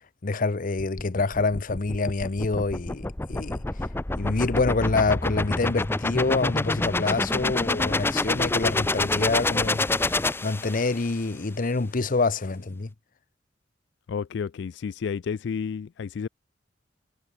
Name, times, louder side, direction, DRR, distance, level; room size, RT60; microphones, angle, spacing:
voice 1, 0.2-3.6 4.2-12.9, left 3 dB, 50° left, 0.8 m, -26 dB
sound 1, 0.8-11.1, left 2 dB, 15° left, 0.5 m, -27 dB
voice 2, 14.1-16.3, left 6 dB, 70° left, 0.3 m, -31 dB
head